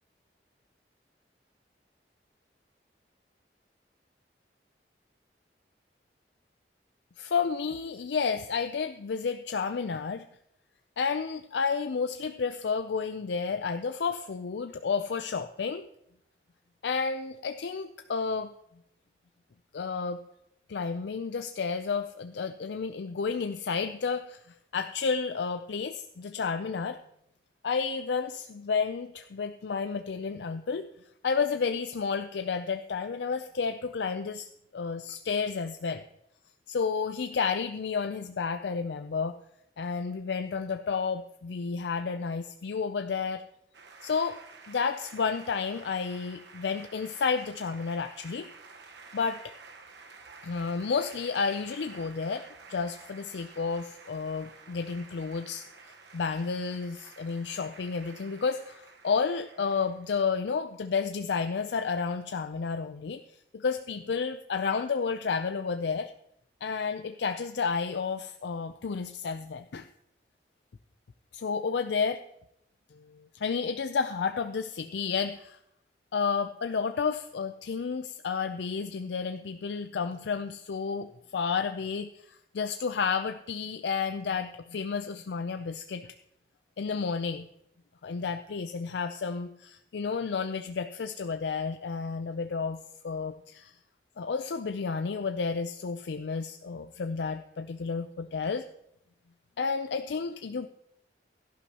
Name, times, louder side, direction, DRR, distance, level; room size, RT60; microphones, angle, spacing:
voice 1, 7.2-10.3 11.0-15.9 16.8-18.5 19.7-20.2 20.7-24.4 24.7-27.0 27.6-30.9 31.2-36.0 36.7-39.4 39.8-43.4 44.0-44.4 44.7-48.5 49.1-49.5 50.4-63.2 63.5-66.1 66.6-69.9 71.3-72.2 72.9-75.6 76.1-86.1 86.8-87.5 88.0-93.7 94.2-98.6 99.6-100.7, left 5 dB, 80° left, 8 dB, 0.5 m, -31 dB
sound 1, 43.7-60.2, right 4 dB, 80° right, 1.1 m, -51 dB
17.0 x 11.5 x 2.9 m, 0.78 s
head